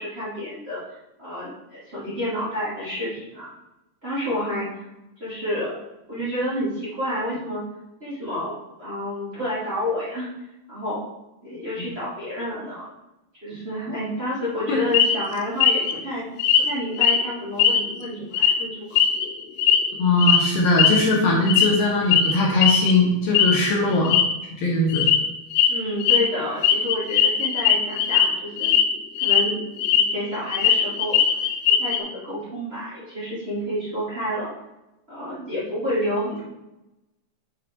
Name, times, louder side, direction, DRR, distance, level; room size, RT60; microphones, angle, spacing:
voice 1, 0.0-3.5 4.0-4.8 5.2-5.7 6.1-7.6 8.0-10.3 10.7-11.0 11.4-12.9 13.4-16.2 16.6-19.0 25.7-28.7 29.2-29.6 29.9-31.2 31.8-34.5 35.1-36.4, left 1 dB, 80° right, -10 dB, 0.5 m, -29 dB
sound 1, 14.9-15.2 15.6-15.9 16.4-16.7 17.0-17.2 17.6-18.1 18.3-18.5 19.0-19.9 20.2-20.4 20.8-21.0 21.5-21.8 22.1-22.3 22.6-22.9 23.4-23.6 23.9-24.2 24.9-25.2 25.5-25.7 26.0-26.2 26.6-28.3 28.6-28.8 29.2-30.1 30.3-32.0, left 8 dB, 85° left, 3.1 m, -19 dB
voice 2, 20.0-24.2 24.6-25.1, left 2 dB, 65° left, -3 dB, 2.4 m, -20 dB
8.8 x 4.9 x 4.4 m, 0.94 s
omnidirectional pair, 5.5 m